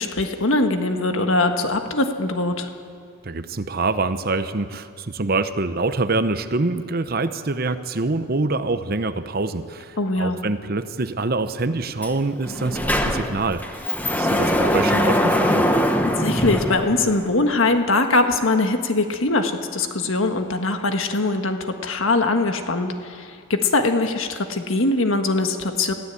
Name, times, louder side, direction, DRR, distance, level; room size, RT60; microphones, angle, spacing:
voice 1, 0.0-2.7 10.0-10.4 16.2-25.9, left 2 dB, 70° left, 6 dB, 1.6 m, -22 dB
voice 2, 3.2-13.8 14.1-15.6, right 3 dB, 45° right, 11 dB, 0.8 m, -25 dB
Sliding door, 12.0-12.1 12.4-17.4, equal, 10° left, 1.1 m, -22 dB
21.5 x 15.0 x 8.3 m, 2.1 s
head